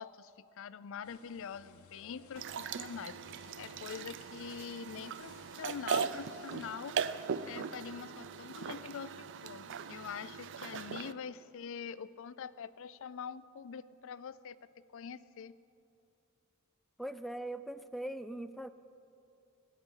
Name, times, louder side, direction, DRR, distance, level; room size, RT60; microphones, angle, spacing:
voice 1, 0.0-3.2 3.6-7.0 7.4-15.6, left 7 dB, 65° left, 16 dB, 0.4 m, -44 dB
sound 1, 1.0-6.6, left 4 dB, 85° left, 0.9 m, -59 dB
sound 2, 2.4-11.1, right 6 dB, 60° right, 0.5 m, -39 dB
voice 2, 17.0-18.7, right 1 dB, ahead, 11 dB, 0.4 m, -40 dB
16.0 x 9.4 x 7.3 m, 2.6 s
head